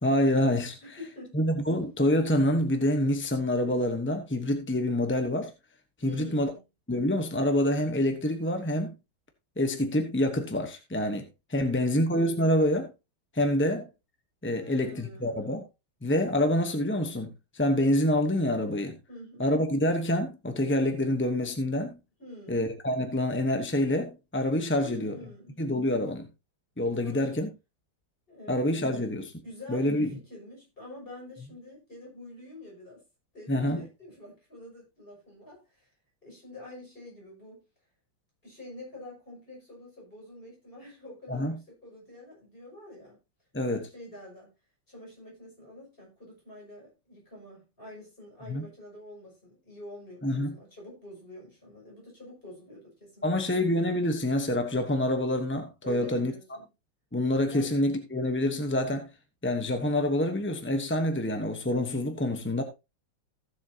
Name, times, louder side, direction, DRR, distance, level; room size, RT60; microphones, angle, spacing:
voice 1, 0.0-0.8 1.3-5.5 6.0-6.5 6.9-8.9 9.6-12.9 13.3-13.9 14.4-15.6 16.0-19.0 19.4-22.0 22.5-25.2 25.6-26.3 26.8-27.5 28.5-29.3 29.7-30.1 33.5-33.8 41.3-41.5 43.5-43.9 48.5-48.6 50.2-50.5 53.2-56.3 57.1-59.1 59.4-62.6, left 1 dB, 10° left, 0.6 m, -27 dB
voice 2, 0.8-1.4 6.0-6.6 11.5-12.1 14.5-15.5 19.1-19.5 22.2-22.6 24.7-25.6 27.0-27.3 28.3-28.7 29.4-33.0 33.3-35.9 36.2-37.6 38.4-43.2 43.6-44.5 44.9-53.6 55.8-56.7 57.5-57.7, left 1 dB, 25° left, 6.7 m, -47 dB
16.0 x 7.4 x 2.9 m
omnidirectional pair, 2.2 m